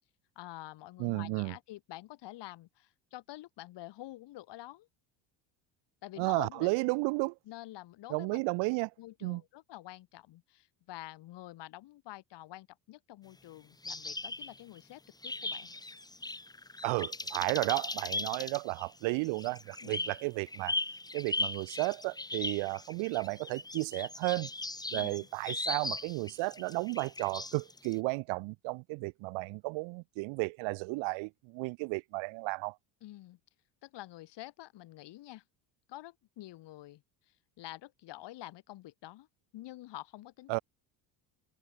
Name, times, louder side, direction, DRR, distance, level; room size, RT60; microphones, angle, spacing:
voice 1, 0.4-4.9 6.0-6.7 7.5-8.4 9.0-15.8 17.4-17.6 19.8-20.1 24.9-25.3 33.0-33.4 33.8-35.4 35.9-39.3 39.5-40.5, left 16 dB, 60° left, 7.9 m, -48 dB
voice 2, 1.0-1.5 6.2-7.3 8.1-8.9 9.2-9.4 16.8-20.7 21.1-24.5 24.9-32.7 40.5-40.6, right 28 dB, 75° right, 2.9 m, -33 dB
sound 1, 13.8-14.8 15.2-27.9, left 2 dB, 10° left, 1.3 m, -38 dB
supercardioid pair, 100°, 46 cm